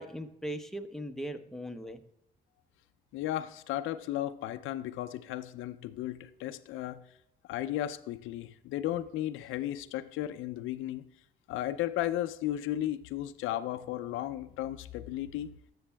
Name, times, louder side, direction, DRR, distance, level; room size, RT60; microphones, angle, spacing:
voice 1, 0.0-2.0, equal, ahead, 0.7 m, -39 dB
voice 2, 3.1-7.0 7.5-11.1 11.5-15.5, left 13 dB, 90° left, 0.5 m, -35 dB
11.0 x 7.1 x 2.2 m
cardioid pair, 90°, 20 cm